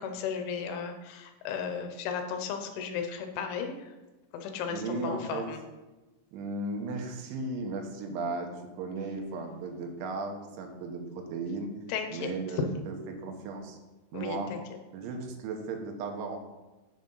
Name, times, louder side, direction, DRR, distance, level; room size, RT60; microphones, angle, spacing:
voice 1, 0.0-3.9 4.3-5.6 11.9-12.6 14.1-14.6, left 6 dB, 80° left, 6 dB, 3.3 m, -35 dB
voice 2, 4.7-5.5 6.3-8.5 8.8-11.7 12.1-13.8 14.1-14.5 14.9-16.4, right 3 dB, 80° right, 3 dB, 3.4 m, -36 dB
7.8 x 6.1 x 5.5 m, 1.1 s
omnidirectional pair, 5.5 m